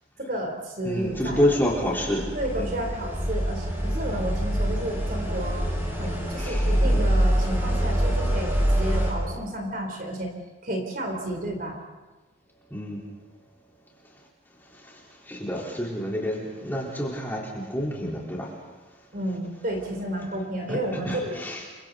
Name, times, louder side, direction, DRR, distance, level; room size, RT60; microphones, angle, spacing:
voice 1, 0.2-1.4 2.3-5.7 6.0-10.3 10.6-11.8 19.1-21.4, right 1 dB, 45° right, 3 dB, 3.8 m, -31 dB
voice 2, 0.8-2.3 2.6-2.7 6.4-7.1 12.7-13.0 15.3-18.5 20.7-21.6, equal, 10° left, -3 dB, 4.0 m, -28 dB
sound 1, 1.0-9.1, equal, 10° right, 6.0 m, -25 dB
29.0 x 25.0 x 4.1 m, 1.2 s
head